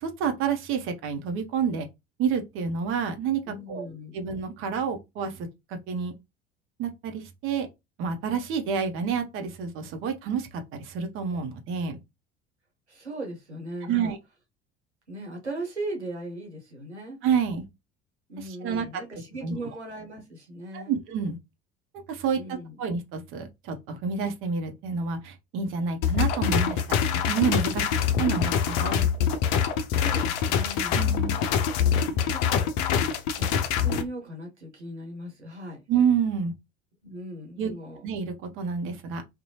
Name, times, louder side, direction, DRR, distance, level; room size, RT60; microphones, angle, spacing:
voice 1, 0.0-1.9 2.2-3.9 4.1-5.5 5.9-6.1 6.8-7.7 8.0-12.0 13.8-14.2 17.2-17.6 18.4-19.0 19.4-19.6 20.7-21.4 22.1-27.0 27.3-27.8 28.2-29.0 30.9-31.3 35.9-36.5 37.6-37.7 38.0-39.2, right 6 dB, 40° right, 0.6 m, -28 dB
voice 2, 3.5-4.2 12.9-14.1 15.1-17.2 18.3-21.0 22.3-22.7 27.7-27.9 29.9-31.0 31.5-33.0 33.3-35.8 37.0-38.0, right 1 dB, 90° right, 0.7 m, -38 dB
sound 1, 26.0-34.0, left 8 dB, 55° left, 0.5 m, -24 dB
2.7 x 2.1 x 2.8 m
figure-of-eight pair, 65°, 33 cm